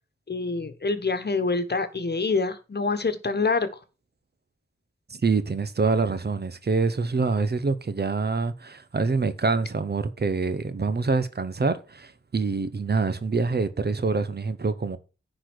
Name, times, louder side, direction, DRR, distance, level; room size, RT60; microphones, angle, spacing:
voice 1, 0.3-3.7, left 4 dB, 55° left, 1.3 m, -26 dB
voice 2, 5.1-15.0, right 4 dB, 50° right, 1.0 m, -26 dB
10.0 x 4.2 x 6.2 m
wide cardioid pair, 70°, 21 cm